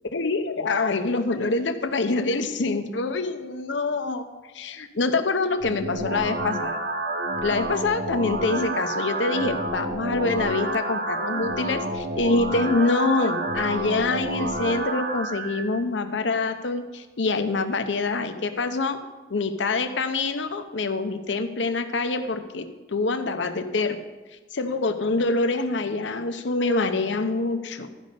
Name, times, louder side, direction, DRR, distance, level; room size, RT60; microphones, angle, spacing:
voice 1, 0.1-4.3 4.5-6.8 7.4-19.0 19.3-24.0 24.5-27.9, left 3 dB, 85° left, 8 dB, 0.8 m, -25 dB
sound 1, 5.6-15.6, right 1 dB, 65° right, 1.0 m, -29 dB
12.5 x 5.3 x 6.7 m, 1.2 s
head